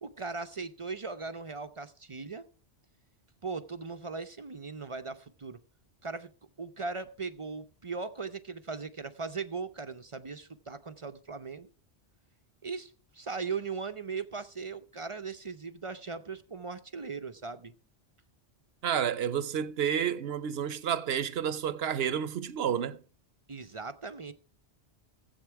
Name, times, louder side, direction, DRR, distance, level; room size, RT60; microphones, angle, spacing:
voice 1, 0.0-2.4 3.4-5.6 6.0-6.3 6.6-11.7 12.6-17.7 23.5-24.3, right 4 dB, 40° right, 0.5 m, -38 dB
voice 2, 18.8-23.0, right 8 dB, 65° right, 0.9 m, -30 dB
15.5 x 8.0 x 4.6 m
omnidirectional pair, 1.2 m